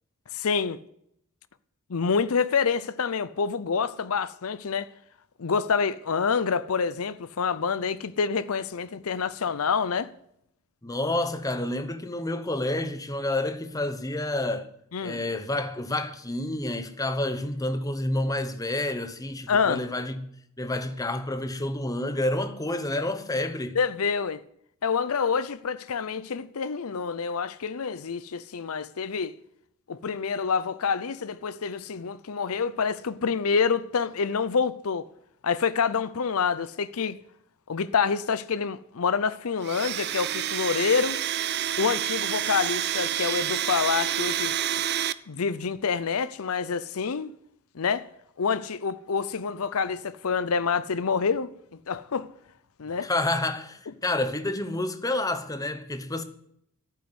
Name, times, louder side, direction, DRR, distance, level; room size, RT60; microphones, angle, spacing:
voice 1, 0.3-0.8 1.9-4.9 5.4-10.1 14.9-15.2 19.5-19.8 23.7-24.4 24.8-29.4 29.9-35.1 35.4-37.2 37.7-41.2 41.8-44.6 45.3-47.3 47.7-48.0 48.4-51.5 51.9-52.3 52.8-53.1, left 5 dB, 85° left, 0.6 m, -27 dB
voice 2, 10.8-14.7 15.0-20.3 20.6-23.8 53.0-56.2, left 1 dB, 15° left, 1.0 m, -29 dB
Domestic sounds home sounds, 39.6-45.1, right 11 dB, 50° right, 0.5 m, -28 dB
11.5 x 9.3 x 7.9 m
head